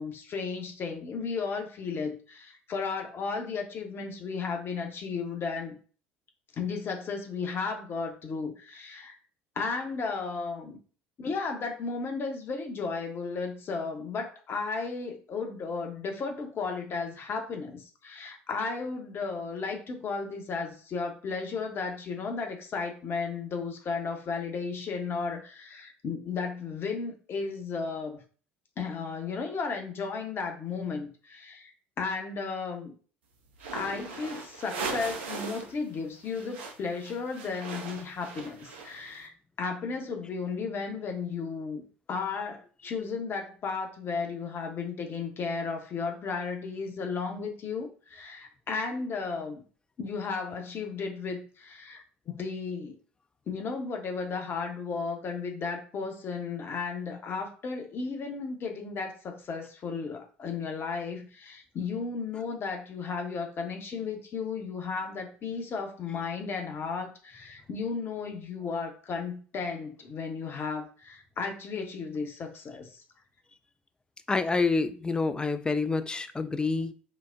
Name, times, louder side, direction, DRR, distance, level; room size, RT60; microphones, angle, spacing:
voice 1, 0.0-5.8 6.6-9.2 9.6-10.8 11.2-28.2 28.8-31.7 32.0-32.9 33.7-39.3 39.6-41.8 42.1-49.6 50.0-53.0 53.5-73.0, left 4 dB, 40° left, 0.8 m, -34 dB
sound 1, 33.5-35.8 36.0-39.2, right 4 dB, 75° right, 0.6 m, -39 dB
voice 2, 74.3-76.9, left 3 dB, 15° left, 0.3 m, -27 dB
3.9 x 2.1 x 2.5 m
figure-of-eight pair, 65°, 6 cm